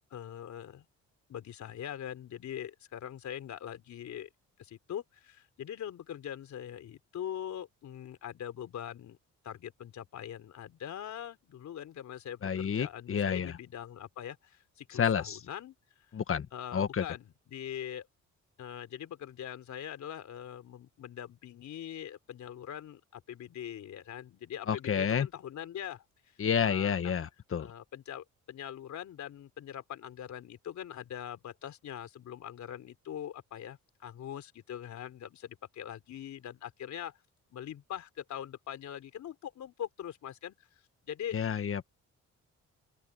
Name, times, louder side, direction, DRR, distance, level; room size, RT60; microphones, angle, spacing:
voice 1, 0.1-0.9 1.3-4.3 4.6-9.2 9.4-15.7 16.5-18.1 18.6-26.4 26.6-27.1 27.6-37.2 37.5-40.6 41.0-41.4, left 10 dB, 70° left, 3.6 m, -42 dB
voice 2, 12.4-13.5 15.0-15.4 16.1-16.5 16.7-17.0 24.7-25.3 26.4-27.7 41.3-41.9, left 7 dB, 45° left, 1.6 m, -29 dB
open air
cardioid pair, 90°, 30 cm